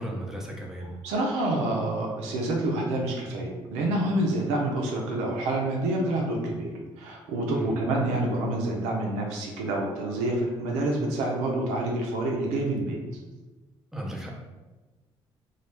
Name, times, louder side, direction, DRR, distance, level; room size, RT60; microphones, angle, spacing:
voice 1, 0.0-0.9 7.5-7.7 13.9-14.3, equal, 5° right, -2 dB, 0.6 m, -35 dB
voice 2, 1.0-13.0, right 1 dB, 90° right, 0 dB, 0.5 m, -27 dB
2.3 x 2.0 x 3.1 m, 1.2 s
supercardioid pair, 70°, 11 cm